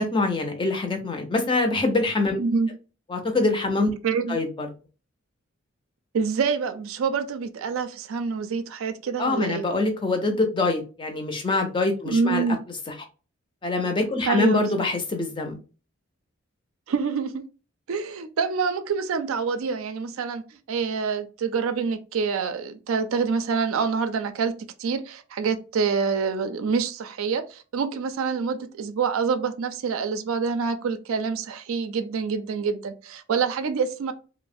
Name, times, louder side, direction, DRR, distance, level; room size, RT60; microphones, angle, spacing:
voice 1, 0.0-2.4 3.1-3.9 4.3-4.7 9.2-12.4 12.9-13.0 13.6-15.6, left 2 dB, 20° left, 0.4 m, -24 dB
voice 2, 2.4-2.7 4.0-4.4 6.1-9.6 12.1-12.6 14.3-14.8 16.9-17.5 17.9-20.4 20.7-34.1, right 5 dB, 75° right, 0.4 m, -26 dB
3.0 x 2.0 x 2.5 m
head